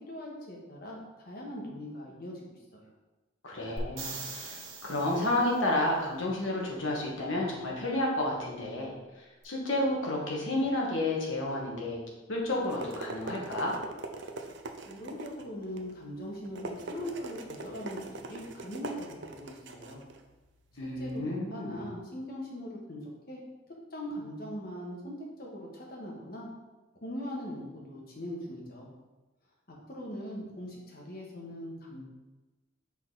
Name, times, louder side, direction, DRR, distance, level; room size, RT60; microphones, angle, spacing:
voice 1, 0.1-2.8 14.8-20.0 20.8-23.4 23.9-26.5 27.0-28.9 29.9-32.0, equal, 50° left, -2 dB, 1.4 m, -41 dB
voice 2, 3.4-12.0 12.3-13.7 20.8-21.9, left 1 dB, 75° left, -2 dB, 1.4 m, -31 dB
sound 1, 3.8-5.6 9.4-9.5, right 3 dB, 90° right, 1.3 m, -41 dB
sound 2, 12.3-21.2, right 3 dB, 65° right, 0.5 m, -42 dB
6.0 x 4.1 x 3.9 m, 1.2 s
head